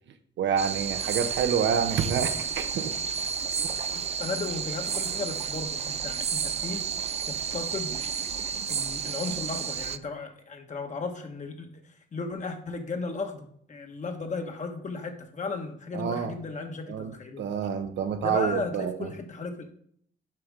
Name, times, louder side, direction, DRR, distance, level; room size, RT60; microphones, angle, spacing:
voice 1, 0.4-2.9 3.6-3.7 15.9-16.4 16.9-19.1, right 7 dB, 65° right, 8 dB, 0.8 m, -28 dB
sound 1, 0.6-10.0, right 7 dB, 35° right, 0.4 m, -31 dB
voice 2, 3.9-6.8 7.3-7.9 8.7-17.4 18.2-19.7, left 3 dB, 40° left, 4 dB, 1.3 m, -35 dB
7.6 x 5.2 x 3.7 m, 0.65 s
cardioid pair, 90°, 20 cm